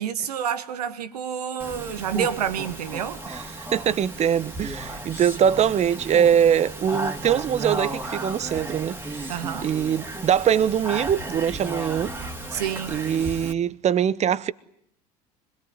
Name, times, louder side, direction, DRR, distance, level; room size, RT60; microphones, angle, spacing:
voice 1, 0.0-3.2 9.3-9.7 12.5-13.0, right 9 dB, 75° right, 1.6 m, -28 dB
Speech, 1.6-13.5, right 2 dB, 10° right, 2.6 m, -34 dB
voice 2, 3.7-9.3 9.6-12.1 12.9-14.5, right 9 dB, 35° right, 1.1 m, -22 dB
25.5 x 21.0 x 9.6 m
figure-of-eight pair, 70°, 20 cm